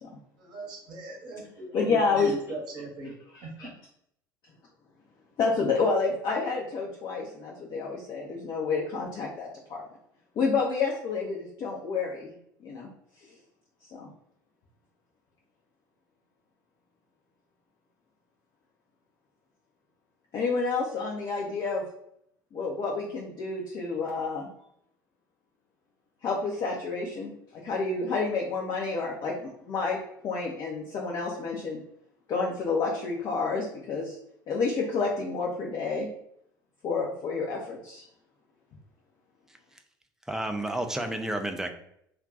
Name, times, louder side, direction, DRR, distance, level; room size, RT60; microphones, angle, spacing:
voice 1, 0.4-3.1 3.4-3.5, right 2 dB, 40° right, -1 dB, 0.9 m, -39 dB
voice 2, 1.7-2.6 3.3-3.7 5.4-9.8 10.4-12.3 12.6-12.9 13.8-14.1 20.3-21.8 22.5-24.5 26.2-30.0 30.2-31.8 32.3-34.2 34.5-36.1 36.8-38.0, left 4 dB, 40° left, -2 dB, 0.6 m, -29 dB
voice 3, 40.3-41.7, right 1 dB, 5° right, 6 dB, 0.4 m, -31 dB
2.4 x 2.2 x 3.8 m, 0.72 s
figure-of-eight pair, 65°, 11 cm